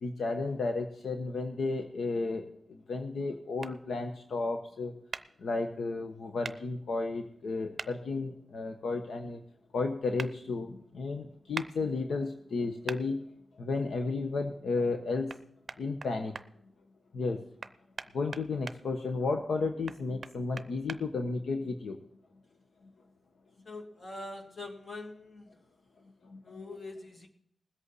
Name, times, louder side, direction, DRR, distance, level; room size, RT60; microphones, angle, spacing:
voice 1, 0.0-4.9 5.4-9.4 9.7-13.2 13.5-15.4 15.8-16.4 17.1-17.4 18.1-22.0 26.2-26.6, left 3 dB, 80° left, 4 dB, 1.1 m, -33 dB
sound 1, 3.6-3.7 5.1-5.3 6.4-6.6 7.8-7.9 10.2-10.3 11.5-11.7 12.9-13.0 15.3-15.4 15.7-16.5 17.6-18.8 19.9-21.0, right 5 dB, 50° right, 0.6 m, -40 dB
voice 2, 23.6-25.5 26.4-27.3, left 2 dB, 45° left, 1 dB, 2.6 m, -43 dB
20.5 x 8.3 x 4.1 m, 0.66 s
wide cardioid pair, 120°, 0 cm